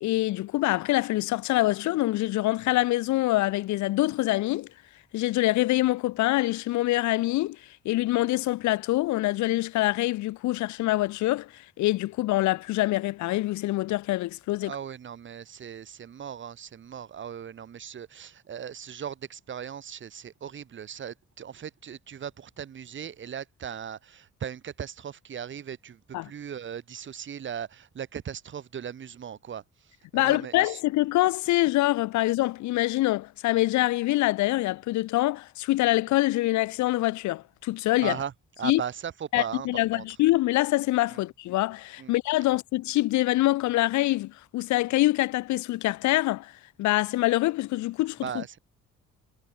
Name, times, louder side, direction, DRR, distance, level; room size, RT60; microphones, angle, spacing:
voice 1, 0.0-4.7 5.1-7.6 7.9-11.5 11.8-14.7 26.1-26.3 30.1-38.2 38.6-38.8 39.3-46.5 46.8-48.4, left 17 dB, 70° left, 0.4 m, -25 dB
voice 2, 14.6-30.8 38.0-38.3 38.6-40.1 41.1-41.2 42.0-42.1 48.2-48.6, right 8 dB, 40° right, 1.0 m, -38 dB
cardioid pair, 90°, 30 cm